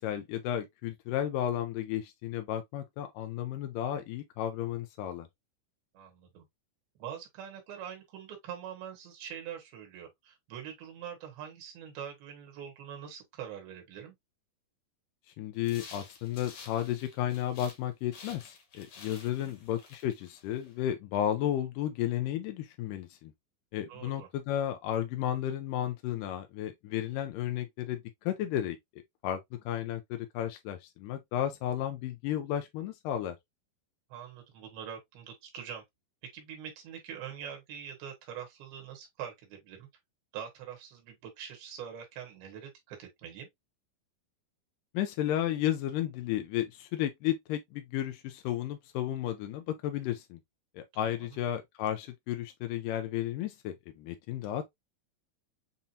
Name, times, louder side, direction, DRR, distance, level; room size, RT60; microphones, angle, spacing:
voice 1, 0.0-5.3 15.4-23.3 23.7-33.4 44.9-50.4 50.8-54.7, left 11 dB, 85° left, 1.9 m, -33 dB
voice 2, 5.9-6.4 7.0-14.1 19.2-19.5 23.9-24.3 34.1-35.8 36.2-39.9 40.3-43.5 51.2-51.4, right 8 dB, 85° right, 3.1 m, -44 dB
sound 1, 15.6-17.8 18.1-20.7, left 5 dB, 55° left, 1.7 m, -51 dB
7.3 x 2.8 x 2.6 m
omnidirectional pair, 4.3 m